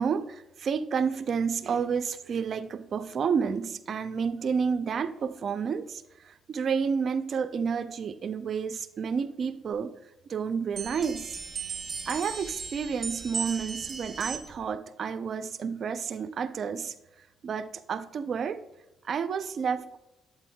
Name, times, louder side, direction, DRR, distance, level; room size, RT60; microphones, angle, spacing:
voice 1, 0.0-9.9 10.3-11.4 12.1-16.9 17.4-18.6 19.0-20.0, right 6 dB, 55° right, 11 dB, 0.5 m, -30 dB
sound 1, 10.7-14.7, right 5 dB, 35° right, 1.2 m, -37 dB
9.0 x 8.0 x 2.3 m, 0.96 s
cardioid pair, 90°, 0 cm